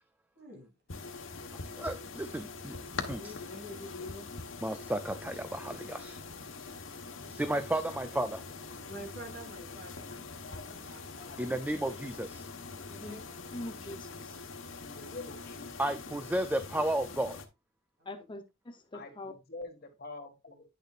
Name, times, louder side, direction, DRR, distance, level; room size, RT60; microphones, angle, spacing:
voice 1, 0.3-0.7 2.9-4.3 8.8-10.4 10.9-11.0 12.9-13.2 18.0-18.1, equal, 55° right, 3.2 m, -47 dB
sound 1, 0.9-17.5, left 4 dB, 80° left, 1.3 m, -44 dB
voice 2, 1.5-2.8 3.1-3.3 4.6-6.2 7.3-8.4 11.4-12.5 15.8-17.4, right 1 dB, 10° right, 0.5 m, -33 dB
voice 3, 10.0-10.7 11.2-11.5 14.8-15.8 18.9-20.6, left 2 dB, 55° left, 1.9 m, -46 dB
voice 4, 13.5-14.4 18.1-19.3, left 1 dB, 25° left, 0.8 m, -43 dB
10.0 x 6.5 x 2.5 m
head